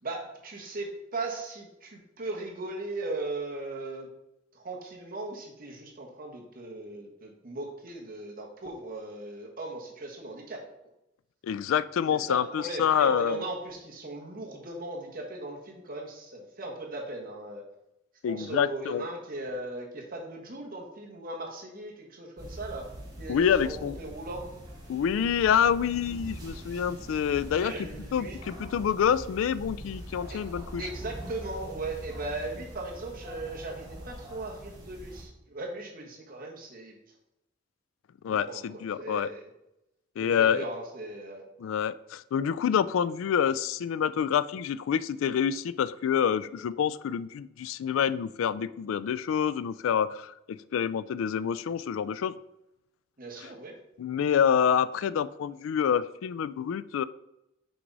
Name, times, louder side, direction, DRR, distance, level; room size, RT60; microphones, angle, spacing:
voice 1, 0.0-4.1 4.5-10.6 12.1-17.6 18.3-22.9 23.2-24.4 27.5-28.4 30.3-30.4 30.8-37.0 38.3-39.5 40.2-41.4 53.2-53.7, right 2 dB, 45° right, 0 dB, 1.3 m, -38 dB
voice 2, 11.4-13.5 18.2-19.0 23.3-24.0 24.9-27.7 28.1-30.9 38.2-39.3 40.2-40.6 41.6-52.4 53.4-53.5 54.0-57.0, left 8 dB, 85° left, 16 dB, 0.3 m, -27 dB
sound 1, 22.4-35.2, right 1 dB, 20° right, 1.9 m, -43 dB
6.1 x 4.7 x 4.0 m, 0.88 s
head